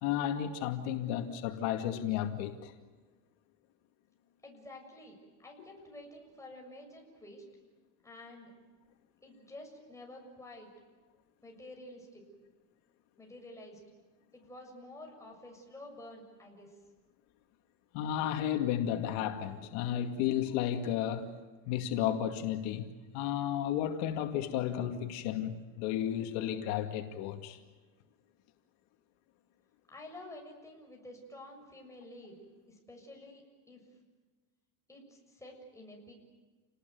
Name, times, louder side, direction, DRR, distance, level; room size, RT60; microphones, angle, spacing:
voice 1, 0.0-2.7 17.9-21.3 21.7-27.6, left 10 dB, 80° left, 2.4 m, -33 dB
voice 2, 4.4-7.4 8.0-8.5 9.2-10.7 11.4-12.3 13.2-13.8 14.3-16.8 29.9-34.0 34.9-36.1, left 1 dB, 5° left, 7.0 m, -50 dB
29.5 x 20.0 x 9.4 m
cardioid pair, 150°, 41 cm